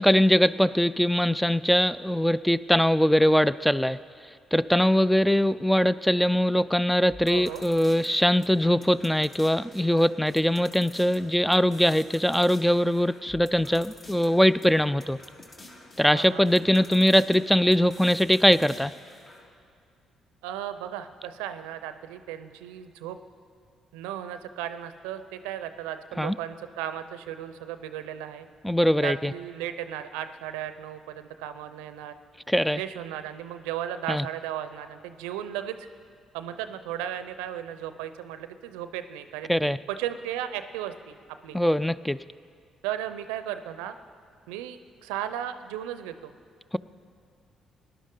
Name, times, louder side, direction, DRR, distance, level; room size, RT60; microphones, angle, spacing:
voice 1, 0.0-4.0 4.5-15.2 16.0-18.9 26.2-26.3 28.6-29.3 32.5-32.8 34.1-34.3 39.5-39.8 41.5-42.2, equal, 5° left, 16 dB, 0.3 m, -22 dB
sound 1, 7.1-19.5, left 2 dB, 45° left, 1.9 m, -49 dB
voice 2, 7.3-7.6 16.1-16.5 20.4-23.2 23.9-28.5 29.0-32.1 32.8-35.9 36.3-41.1 41.4-41.6 42.8-44.0 44.5-46.3, right 11 dB, 80° right, 11 dB, 0.5 m, -35 dB
19.0 x 11.0 x 3.8 m, 2.3 s
hypercardioid pair, 50°, 0 cm